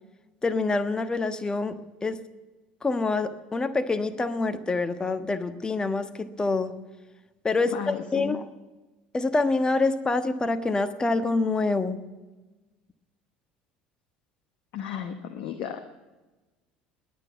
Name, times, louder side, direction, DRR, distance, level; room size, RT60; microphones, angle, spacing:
voice 1, 0.4-2.2 2.8-6.8 7.4-8.5 9.1-12.0, left 3 dB, 15° left, 10 dB, 1.3 m, -26 dB
voice 2, 7.7-8.3 14.7-15.8, left 8 dB, 50° left, 7 dB, 1.1 m, -34 dB
20.5 x 9.4 x 7.2 m, 1.2 s
figure-of-eight pair, 65°, 5 cm